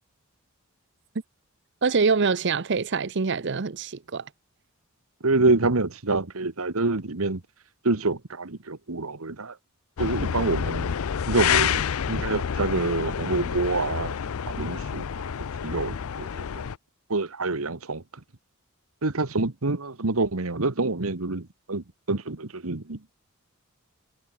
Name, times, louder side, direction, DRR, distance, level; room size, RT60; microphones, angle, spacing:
voice 1, 1.8-4.3, right 4 dB, 55° right, 0.7 m, -25 dB
voice 2, 5.2-7.4 7.8-9.6 10.0-10.9 11.3-14.2 14.5-15.3 15.6-16.7 17.1-18.0 19.0-23.0, right 3 dB, 80° right, 1.5 m, -27 dB
sound 1, 10.0-16.8, left 7 dB, 85° left, 0.5 m, -28 dB
head